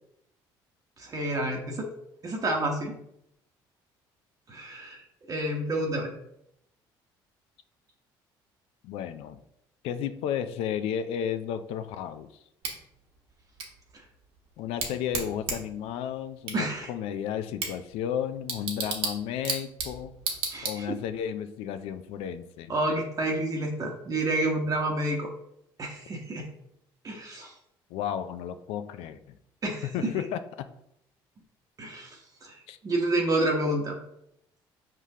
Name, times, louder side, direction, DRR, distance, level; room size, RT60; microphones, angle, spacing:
voice 1, 1.0-1.9 2.2-2.9 4.5-6.1 16.5-16.9 20.5-21.0 22.7-25.3 25.8-26.5 27.0-27.5 29.6-29.9 31.8-34.0, right 1 dB, 40° right, 1 dB, 0.9 m, -29 dB
voice 2, 8.8-9.4 9.8-12.4 14.6-20.1 20.6-22.7 27.9-29.2 29.8-30.7 32.7-32.8, left 9 dB, 75° left, 11 dB, 0.3 m, -33 dB
Bicycle / Tick, 12.6-21.2, right 4 dB, 65° right, 1.2 m, -36 dB
4.8 x 3.7 x 2.7 m, 0.77 s
supercardioid pair, 75°, 10 cm